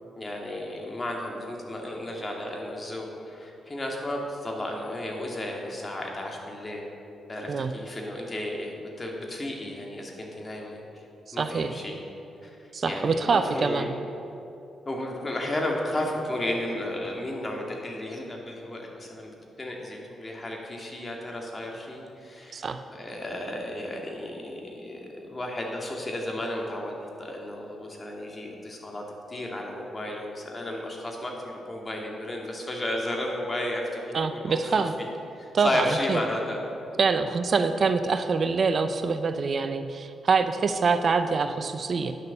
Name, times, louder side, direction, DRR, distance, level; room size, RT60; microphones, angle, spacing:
voice 1, 0.2-6.9 7.3-11.1 11.3-12.0 12.4-13.9 14.9-34.0 34.3-35.1 35.4-36.6, left 1 dB, 30° left, 0 dB, 2.3 m, -33 dB
voice 2, 11.3-11.7 12.7-13.9 22.5-22.8 34.1-34.9 35.5-36.2 37.0-42.1, right 5 dB, 55° right, 9 dB, 0.5 m, -25 dB
10.0 x 6.6 x 6.7 m, 2.8 s
supercardioid pair, 45°, 0 cm